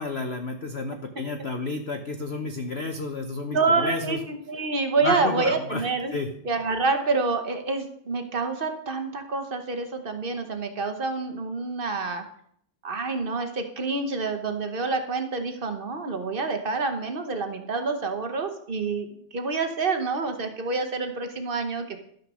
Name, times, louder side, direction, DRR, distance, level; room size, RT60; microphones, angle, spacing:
voice 1, 0.0-4.2 5.0-5.9 6.1-6.3, left 3 dB, 80° left, 6 dB, 0.5 m, -31 dB
voice 2, 3.5-6.1 6.4-12.2 12.8-22.0, right 4 dB, 40° right, 6 dB, 0.8 m, -27 dB
12.0 x 6.6 x 6.2 m, 0.67 s
omnidirectional pair, 2.4 m